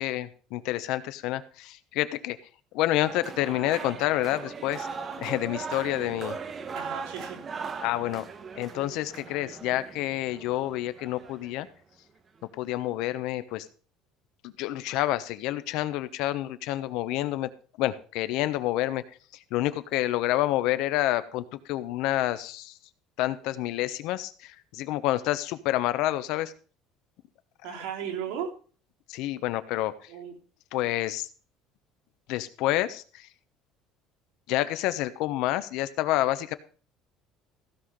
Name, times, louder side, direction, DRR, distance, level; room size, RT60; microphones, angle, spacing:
voice 1, 0.0-2.4 2.7-4.9 5.2-6.4 7.8-8.2 8.6-11.7 12.6-13.7 14.4-17.5 17.8-19.0 19.5-22.7 23.2-26.5 29.1-29.9 30.7-31.3 32.3-33.3 34.5-36.5, left 15 dB, 65° left, 13 dB, 1.0 m, -28 dB
sound 1, 3.0-11.5, right 5 dB, 25° right, 1.2 m, -39 dB
voice 2, 6.7-7.8 27.6-28.5 30.1-30.3, right 8 dB, 85° right, 1 dB, 3.9 m, -36 dB
16.0 x 5.8 x 6.7 m, 0.40 s
cardioid pair, 160°, 0 cm